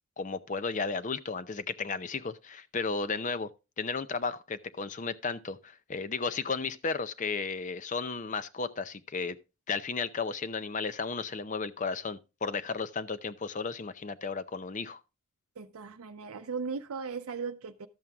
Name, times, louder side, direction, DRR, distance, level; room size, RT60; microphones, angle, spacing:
voice 1, 0.2-3.5 3.8-9.4 9.7-15.0, left 4 dB, 35° left, 0.5 m, -34 dB
voice 2, 15.6-17.9, right 5 dB, 80° right, 0.6 m, -37 dB
12.5 x 7.4 x 3.5 m
head